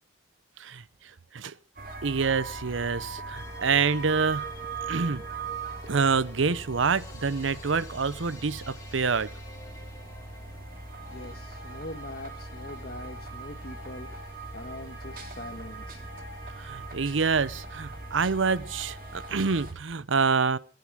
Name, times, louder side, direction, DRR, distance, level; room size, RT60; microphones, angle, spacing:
sound 1, 1.8-19.7, right 4 dB, 45° right, 2.8 m, -40 dB
voice 1, 2.0-4.5 4.9-5.3 5.9-9.3 16.6-20.6, right 5 dB, 80° right, 0.7 m, -27 dB
sound 2, 3.3-19.7, left 2 dB, 20° left, 3.5 m, -50 dB
voice 2, 11.1-14.1 14.5-16.0, left 1 dB, 50° left, 1.5 m, -42 dB
18.5 x 11.0 x 6.2 m
head